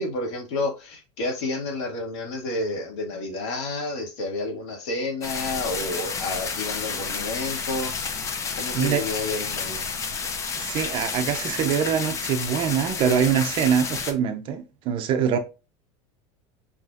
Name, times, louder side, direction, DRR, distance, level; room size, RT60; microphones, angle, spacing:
voice 1, 0.0-7.9 8.5-9.9, left 2 dB, 70° left, 2.1 m, -30 dB
sound 1, 5.2-14.1, left 5 dB, 20° left, 0.5 m, -31 dB
voice 2, 10.6-15.4, right 8 dB, 35° right, 0.6 m, -24 dB
5.7 x 3.0 x 2.4 m
cardioid pair, 175°, 16 cm